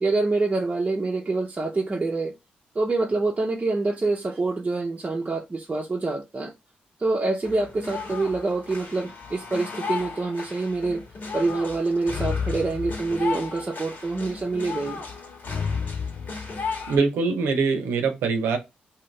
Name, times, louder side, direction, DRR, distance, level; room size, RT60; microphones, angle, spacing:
voice 1, 0.0-2.3 2.7-6.5 7.0-11.0 11.3-15.0, right 3 dB, 35° right, 0.7 m, -26 dB
sound 1, 7.4-17.0, left 5 dB, 55° left, 1.5 m, -33 dB
voice 2, 16.9-18.6, right 4 dB, 80° right, 0.7 m, -23 dB
2.8 x 2.6 x 3.1 m
supercardioid pair, 45°, 4 cm